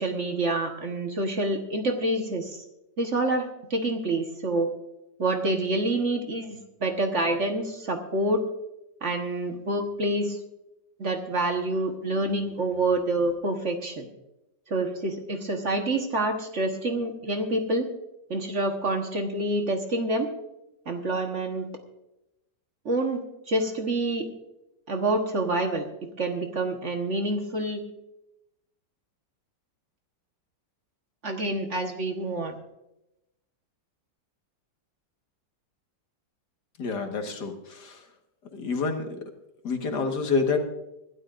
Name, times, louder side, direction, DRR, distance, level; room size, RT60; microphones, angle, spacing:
voice 1, 0.0-2.6 3.0-4.7 5.2-8.4 9.0-10.4 11.0-14.1 14.7-17.9 18.3-20.3 20.9-21.7 22.8-24.3 24.9-25.9 26.2-27.8 31.2-32.5, right 2 dB, 45° right, 4 dB, 1.4 m, -27 dB
voice 2, 36.8-38.1 38.5-39.1 39.6-40.6, left 4 dB, 70° left, 4 dB, 2.1 m, -28 dB
25.5 x 12.5 x 2.5 m, 0.90 s
omnidirectional pair, 1.9 m